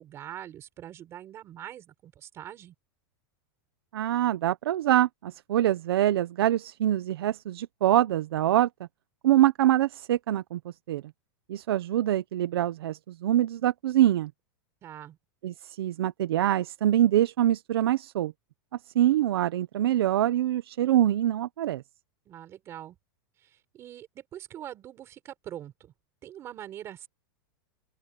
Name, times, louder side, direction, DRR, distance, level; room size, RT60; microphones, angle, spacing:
voice 1, 0.0-2.7 14.8-15.2 22.2-23.0 23.4-25.9 26.2-27.1, right 11 dB, 20° right, 4.6 m, -43 dB
voice 2, 3.9-8.7 9.2-11.0 11.5-14.3 15.4-18.3 18.9-21.8, right 12 dB, 80° right, 1.0 m, -24 dB
open air
supercardioid pair, 175°, 12 cm